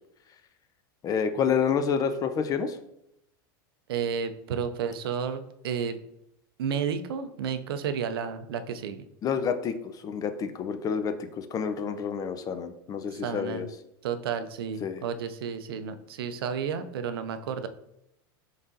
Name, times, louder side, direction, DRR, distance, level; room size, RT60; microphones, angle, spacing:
voice 1, 1.0-2.8 9.2-9.8 10.0-13.7 14.8-15.0, left 7 dB, 30° left, 9 dB, 0.3 m, -28 dB
voice 2, 3.9-6.0 6.6-9.0 13.2-13.7 14.0-17.7, right 7 dB, 85° right, 10 dB, 0.4 m, -32 dB
3.9 x 3.6 x 2.6 m, 0.80 s
supercardioid pair, 115°, 12 cm